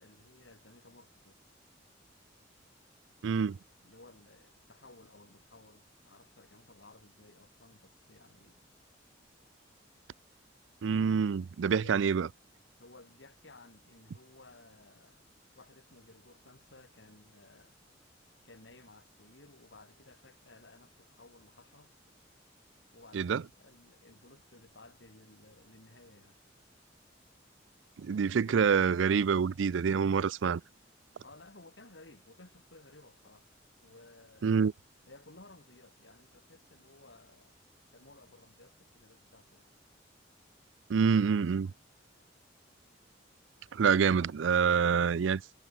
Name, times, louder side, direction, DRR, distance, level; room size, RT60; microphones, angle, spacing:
voice 1, 0.0-1.4 3.8-8.6 11.8-12.0 12.8-15.3 15.6-17.8 18.4-21.9 22.9-26.4 31.2-33.5 33.8-34.6 35.1-37.6 37.9-39.7, left 2 dB, 70° left, 3.5 m, -57 dB
voice 2, 3.2-3.6 10.8-12.3 23.1-23.4 28.0-30.6 34.4-34.7 40.9-41.7 43.7-45.4, right 6 dB, 85° right, 0.4 m, -26 dB
head